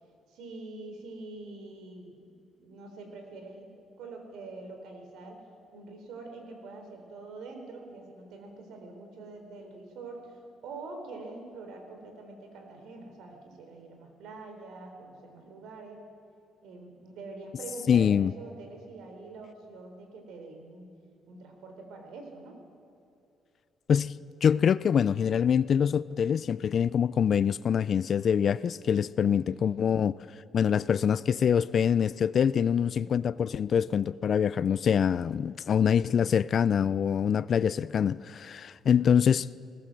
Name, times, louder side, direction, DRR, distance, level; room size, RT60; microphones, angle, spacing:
voice 1, 0.3-2.1 2.6-3.7 4.0-5.4 5.7-16.0 16.6-20.9 21.3-22.6 29.2-29.9, right 3 dB, 85° right, 3.8 m, -45 dB
voice 2, 17.9-18.3 23.9-24.1 24.4-30.1 30.5-39.5, left 8 dB, 55° left, 0.4 m, -25 dB
20.0 x 19.0 x 7.7 m
cardioid pair, 90°, 0 cm